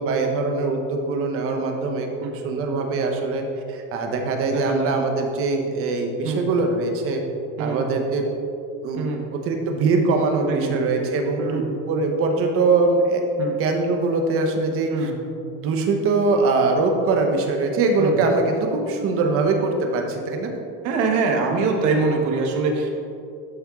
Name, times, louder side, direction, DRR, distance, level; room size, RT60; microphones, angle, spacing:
voice 1, 0.0-7.2 7.6-8.2 8.8-13.2 13.6-14.9 15.4-20.5, right 3 dB, 40° right, 3 dB, 1.0 m, -22 dB
voice 2, 4.5-5.0 6.2-6.5 7.6-7.9 9.0-9.3 10.5-10.8 11.4-11.7 13.4-13.6 14.9-15.2 18.0-18.2 20.8-22.9, right 4 dB, 55° right, 2 dB, 1.3 m, -24 dB
11.0 x 4.4 x 3.6 m, 2.5 s
cardioid pair, 150°, 33 cm